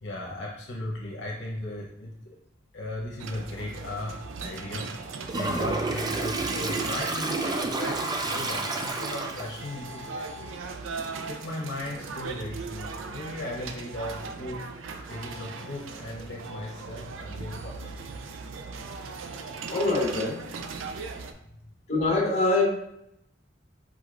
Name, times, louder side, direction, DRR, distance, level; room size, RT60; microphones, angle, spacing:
voice 1, 0.0-2.1 2.7-4.9 5.3-10.3 11.3-14.6 15.1-18.1 21.3-21.4, left 1 dB, 65° left, -3 dB, 0.9 m, -36 dB
sound 1, 3.2-21.3, right 4 dB, 80° right, 0.4 m, -39 dB
Toilet flush, 5.3-9.6, right 2 dB, 20° right, 0.4 m, -30 dB
voice 2, 19.7-20.4 21.9-22.6, left 2 dB, 35° left, -2 dB, 1.2 m, -24 dB
4.9 x 4.2 x 2.5 m, 0.78 s
head